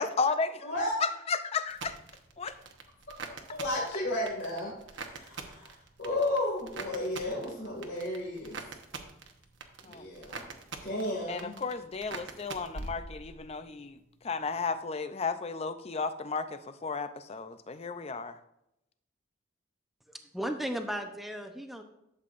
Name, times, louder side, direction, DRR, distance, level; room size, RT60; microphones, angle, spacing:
voice 1, 0.0-0.7 1.0-2.0 2.4-2.5 9.8-10.0 11.3-14.0 14.2-18.3, left 4 dB, 30° left, 10 dB, 0.5 m, -33 dB
voice 2, 0.6-0.9 3.5-8.6 9.9-10.4 10.8-11.5, left 1 dB, 60° left, -4 dB, 2.2 m, -33 dB
sound 1, 1.7-13.6 13.9-14.5, right 4 dB, 65° right, 1.0 m, -45 dB
voice 3, 20.1-21.8, equal, ahead, 5 dB, 0.7 m, -35 dB
12.0 x 7.6 x 2.5 m, 0.82 s
head